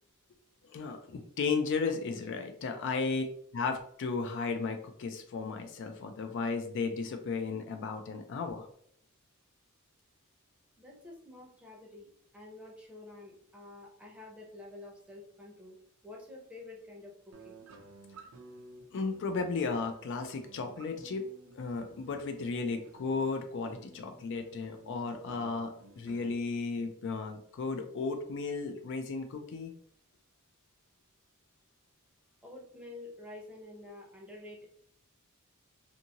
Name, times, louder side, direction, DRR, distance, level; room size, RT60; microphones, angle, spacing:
voice 1, 0.7-3.2 3.5-8.7 18.9-21.3 21.5-29.7, left 4 dB, 55° left, 6 dB, 0.3 m, -34 dB
voice 2, 10.8-15.8 16.0-17.6 32.4-34.7, left 2 dB, 5° right, -2 dB, 0.6 m, -49 dB
sound 1, 17.3-26.3, right 3 dB, 65° right, 0.5 m, -54 dB
2.6 x 2.6 x 2.7 m, 0.64 s
head